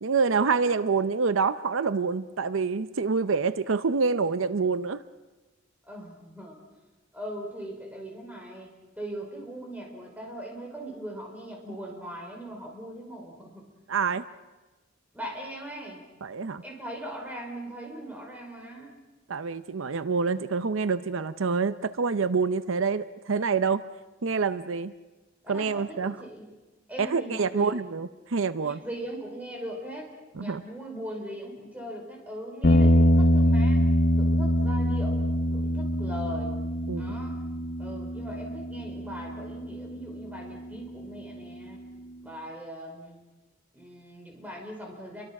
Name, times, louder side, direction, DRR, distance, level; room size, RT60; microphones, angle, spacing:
voice 1, 0.0-5.0 13.9-14.3 16.2-16.6 19.3-23.8 24.2-24.9 25.5-26.2 27.0-28.8 30.4-30.6 36.9-37.1, right 5 dB, 80° right, 13 dB, 0.7 m, -26 dB
voice 2, 5.8-6.6 7.1-8.7 9.0-13.6 15.1-16.0 16.6-19.0 25.4-26.5 26.9-27.9 28.6-33.9 34.2-36.6 36.9-37.4 37.8-41.8 42.2-43.2 43.7-45.2, equal, 10° right, 1 dB, 5.0 m, -40 dB
sound 1, 32.6-41.0, equal, 50° left, 1.0 m, -24 dB
29.0 x 23.5 x 6.0 m, 1.2 s
head